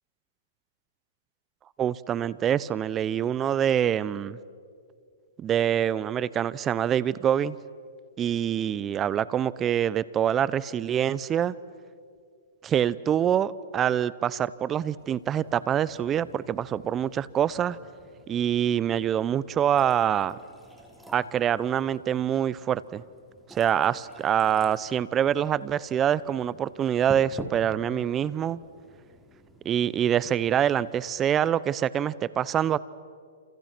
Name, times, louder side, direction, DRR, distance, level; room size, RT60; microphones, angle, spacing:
voice 1, 1.8-4.4 5.4-7.6 8.2-11.5 12.6-17.8 18.3-20.4 21.1-23.0 23.5-28.6 29.6-32.8, right 9 dB, 20° right, 19 dB, 0.7 m, -25 dB
sound 1, 15.0-31.3, equal, ahead, 3.1 m, -49 dB
29.0 x 28.0 x 6.1 m, 2.2 s
hypercardioid pair, 135°, 0 cm